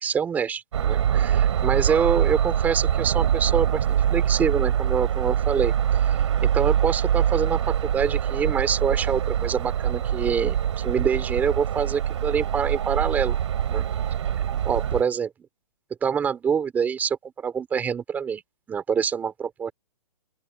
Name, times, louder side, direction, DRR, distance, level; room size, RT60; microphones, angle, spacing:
voice 1, 0.0-5.7 6.0-13.4 13.7-13.8 14.6-15.3 16.0-18.4 18.7-19.7, right 7 dB, 10° right, 4.3 m, -26 dB
sound 1, 0.7-15.0, right 9 dB, 50° right, 3.6 m, -24 dB
open air
hypercardioid pair, 170°, 20 cm